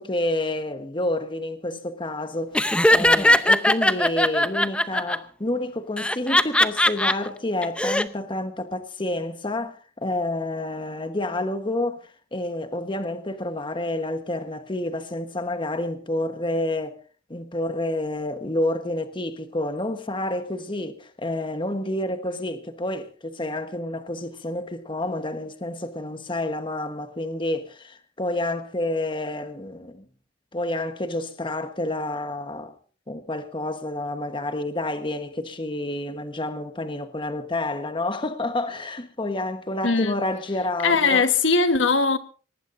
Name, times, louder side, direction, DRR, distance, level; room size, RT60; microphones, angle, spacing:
voice 1, 0.0-17.0 17.3-30.0 30.5-32.7 33.1-41.2, left 1 dB, 25° left, 1.2 m, -29 dB
Laughter, 2.5-5.2 6.0-7.1 7.6-8.0, left 1 dB, 5° left, 0.7 m, -19 dB
voice 2, 39.8-40.1 40.8-42.2, left 4 dB, 80° left, 1.4 m, -20 dB
23.5 x 19.0 x 2.6 m
head